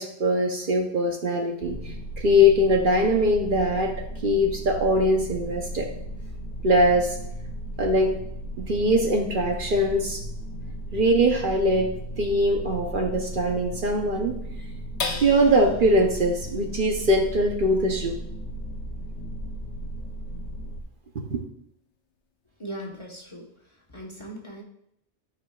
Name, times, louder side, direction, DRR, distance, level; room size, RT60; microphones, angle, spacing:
voice 1, 0.0-3.9 4.2-5.9 6.6-7.2 7.8-8.1 8.6-10.2 10.9-11.9 12.2-14.4 15.2-18.2 21.3-21.4, equal, 55° right, 2 dB, 0.9 m, -22 dB
sound 1, 1.6-20.8, right 1 dB, 65° left, 0.9 m, -36 dB
sound 2, 15.0-21.7 22.2-22.3 22.7-23.2, left 4 dB, 85° left, 1.1 m, -40 dB
voice 2, 22.6-24.6, right 1 dB, 30° left, -2 dB, 1.1 m, -39 dB
11.5 x 4.9 x 2.3 m, 0.75 s
omnidirectional pair, 1.1 m